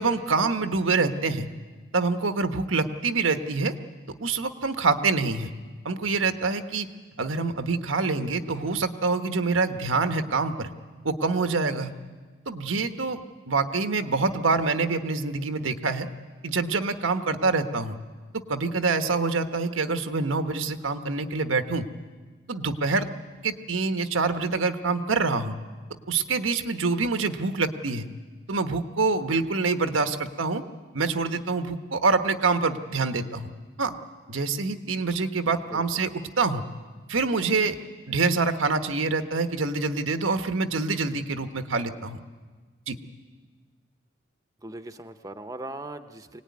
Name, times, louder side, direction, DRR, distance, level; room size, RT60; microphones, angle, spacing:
voice 1, 0.0-1.5 1.9-3.7 4.2-5.5 5.8-6.9 7.2-10.7 11.0-11.9 12.5-13.2 13.5-16.1 16.4-18.0 18.3-21.9 22.5-23.1 23.4-25.6 26.1-28.1 28.5-30.6 30.9-33.5 33.8-33.9 34.3-36.1 36.4-36.6 37.1-37.8 38.1-42.2 42.9-43.0, right 4 dB, 90° right, 8 dB, 1.2 m, -26 dB
voice 2, 44.6-46.4, right 2 dB, 15° right, 8 dB, 0.8 m, -39 dB
23.5 x 18.5 x 9.6 m, 1.4 s
head